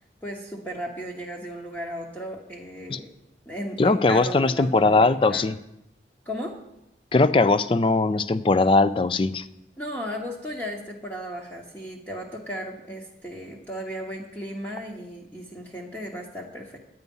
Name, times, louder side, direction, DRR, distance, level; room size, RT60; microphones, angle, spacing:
voice 1, 0.2-3.1 3.5-5.5 6.2-6.6 9.8-16.8, equal, 10° left, -3 dB, 1.1 m, -35 dB
voice 2, 3.8-5.5 7.1-9.4, left 3 dB, 30° left, 14 dB, 0.4 m, -20 dB
9.5 x 9.3 x 5.4 m, 0.85 s
head